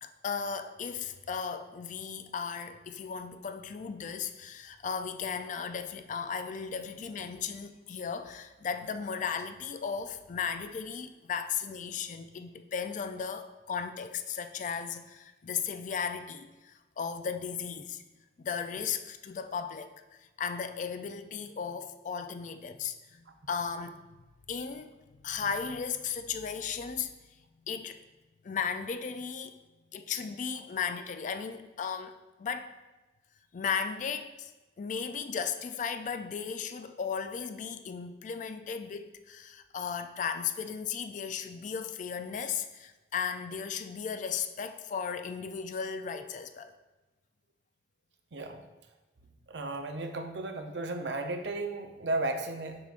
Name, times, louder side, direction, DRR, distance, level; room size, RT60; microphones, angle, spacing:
voice 1, 0.0-18.0 18.4-24.1 24.5-24.9 25.2-27.4 27.7-28.0 28.4-29.6 29.9-32.7 33.5-34.5 34.8-46.7, left 6 dB, 45° left, 9 dB, 0.3 m, -36 dB
voice 2, 49.5-52.8, right 2 dB, 75° right, 5 dB, 0.6 m, -34 dB
6.8 x 6.2 x 2.5 m, 1.1 s
head